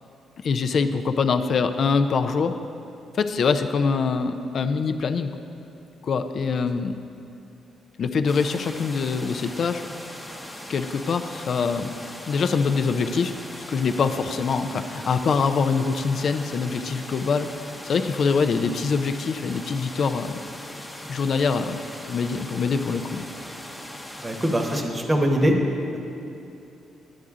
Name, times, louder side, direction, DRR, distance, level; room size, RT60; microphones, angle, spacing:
voice 1, 0.4-2.6 3.2-5.3 6.0-7.0 8.0-9.8 10.7-11.9 12.3-13.3 13.7-17.5 17.8-20.3 21.1-21.8 22.0-23.2, left 5 dB, 55° left, 8 dB, 0.4 m, -24 dB
sound 1, 8.3-24.8, left 1 dB, 10° left, 0.9 m, -39 dB
voice 2, 24.2-25.6 25.9-26.0, equal, 20° right, 2 dB, 1.0 m, -22 dB
9.9 x 7.9 x 3.7 m, 2.8 s
cardioid pair, 90°, 0 cm